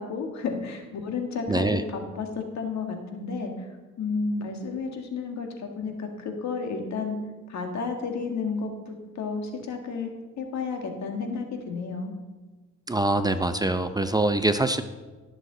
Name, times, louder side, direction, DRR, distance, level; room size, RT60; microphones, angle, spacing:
voice 1, 0.0-3.7 4.0-7.2 7.5-12.1, left 4 dB, 65° left, 4 dB, 1.9 m, -32 dB
voice 2, 1.5-1.8 12.9-14.8, right 2 dB, 15° right, 9 dB, 0.6 m, -24 dB
17.0 x 6.6 x 3.9 m, 1.3 s
cardioid pair, 90°, 30 cm